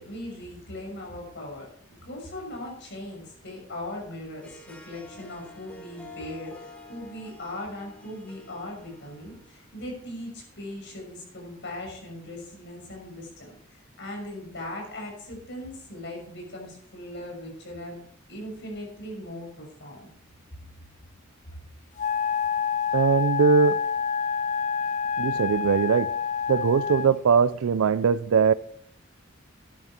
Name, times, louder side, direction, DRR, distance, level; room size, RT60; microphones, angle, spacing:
voice 1, 0.0-18.0 18.3-20.1, left 1 dB, 60° left, 6.5 m, -39 dB
Harp, 4.4-9.7, left 2 dB, 5° left, 1.8 m, -48 dB
Wind instrument woodwind instrument, 22.0-27.2, left 6 dB, 35° left, 0.4 m, -27 dB
voice 2, 22.9-23.8 25.2-26.1 26.5-28.5, right 6 dB, 80° right, 0.4 m, -21 dB
12.0 x 10.5 x 4.4 m
head